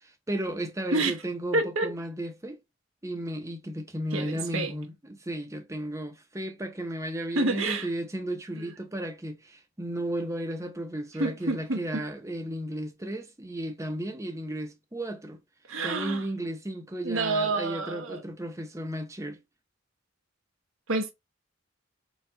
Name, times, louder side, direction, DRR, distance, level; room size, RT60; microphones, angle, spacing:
voice 1, 0.0-2.6 3.0-15.4 15.8-19.4, right 1 dB, 15° right, 0.7 m, -34 dB
voice 2, 1.5-1.9 4.1-4.7 7.3-7.9 8.5-8.7 11.2-12.0 15.7-16.2 17.0-18.2 20.9-21.1, right 2 dB, 85° right, 1.0 m, -28 dB
4.5 x 2.3 x 3.8 m
head